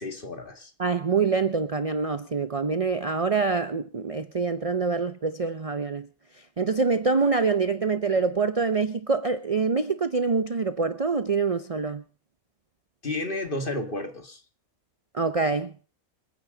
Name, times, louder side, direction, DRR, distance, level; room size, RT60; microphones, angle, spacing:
voice 1, 0.0-0.7 13.0-14.4, left 2 dB, 40° left, 2.3 m, -32 dB
voice 2, 0.8-6.1 6.6-12.0 15.1-15.7, right 4 dB, 35° right, 0.6 m, -25 dB
27.0 x 9.5 x 3.9 m
omnidirectional pair, 1.5 m